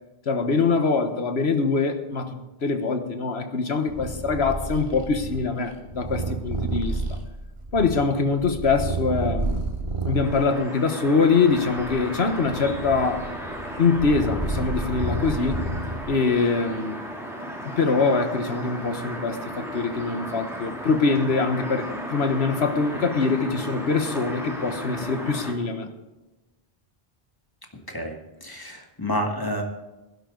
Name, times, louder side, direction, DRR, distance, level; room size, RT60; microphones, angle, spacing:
voice 1, 0.2-7.0 7.7-9.6 10.0-13.3 13.8-15.6 16.1-17.1 17.6-25.9, left 4 dB, 85° left, 7 dB, 1.6 m, -23 dB
Purr, 3.9-10.4 11.1-16.3, right 2 dB, 30° right, 2.1 m, -31 dB
sound 1, 10.2-25.5, equal, ahead, 3.1 m, -35 dB
voice 2, 27.9-29.6, equal, 20° left, 2 dB, 1.9 m, -29 dB
16.5 x 12.0 x 3.9 m, 1.1 s
omnidirectional pair, 1.0 m